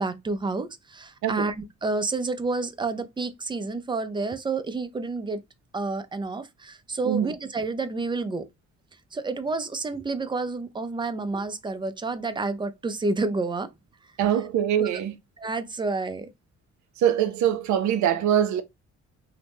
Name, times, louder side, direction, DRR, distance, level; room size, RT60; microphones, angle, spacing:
voice 1, 0.0-5.4 5.7-8.4 9.1-13.7 14.8-14.9 15.4-16.3, right 3 dB, 15° right, 0.4 m, -29 dB
voice 2, 14.2-15.1 17.0-18.6, right 10 dB, 75° right, 0.5 m, -23 dB
2.8 x 2.1 x 3.4 m
cardioid pair, 90°, 30 cm